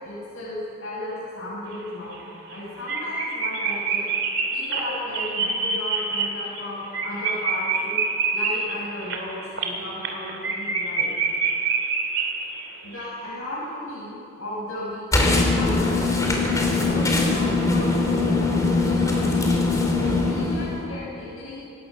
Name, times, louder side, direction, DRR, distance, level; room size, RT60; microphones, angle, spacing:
voice 1, 0.0-2.2 2.5-4.0 4.5-8.0 8.3-9.4 9.6-11.1 12.8-16.3 16.7-18.4 18.8-19.6 20.0-21.6, left 1 dB, 75° left, -8 dB, 7.2 m, -34 dB
sound 1, 1.7-1.8 2.1-2.2 2.5-2.6 2.9-12.7 13.0-13.1, right 4 dB, 60° right, 2.8 m, -26 dB
sound 2, 15.1-20.9, left 3 dB, 15° left, 3.0 m, -21 dB
25.0 x 18.5 x 6.5 m, 2.8 s
head